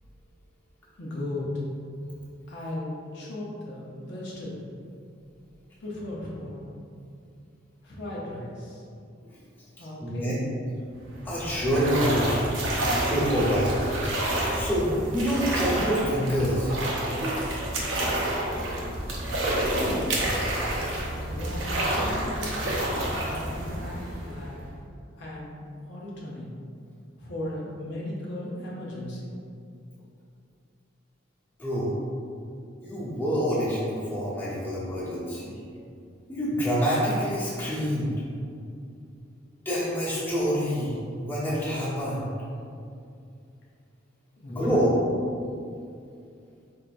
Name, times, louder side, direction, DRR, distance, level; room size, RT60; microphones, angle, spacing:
voice 1, 1.0-1.5 2.5-4.7 5.8-6.7 7.8-8.8 9.8-10.4 19.7-20.4 21.2-22.7 23.2-24.6 25.2-25.6 25.9-26.6 27.2-29.3 44.4-45.0, left 1 dB, 65° left, -5 dB, 0.7 m, -36 dB
voice 2, 10.0-10.4 11.2-12.4 13.0-13.9 14.5-16.7 31.6-32.0 32.8-35.5 36.3-38.1 39.6-42.3 44.5-44.9, equal, 10° left, -10 dB, 1.1 m, -26 dB
sound 1, 11.0-24.7, right 1 dB, 75° right, 0.8 m, -29 dB
4.5 x 3.5 x 2.5 m, 2.5 s
head